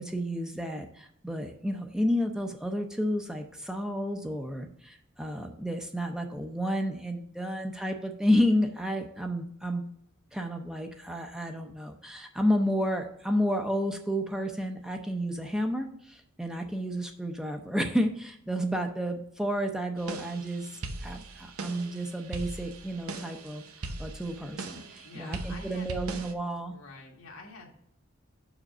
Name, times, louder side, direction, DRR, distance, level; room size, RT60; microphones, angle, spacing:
voice 1, 0.0-9.8 10.3-23.6 24.0-26.7, equal, 5° right, 4 dB, 0.6 m, -31 dB
sound 1, 20.0-26.3, right 2 dB, 90° right, 0.8 m, -40 dB
voice 2, 25.0-25.9 26.7-27.7, left 3 dB, 85° left, 0 dB, 1.8 m, -47 dB
5.8 x 5.0 x 6.5 m, 0.68 s
head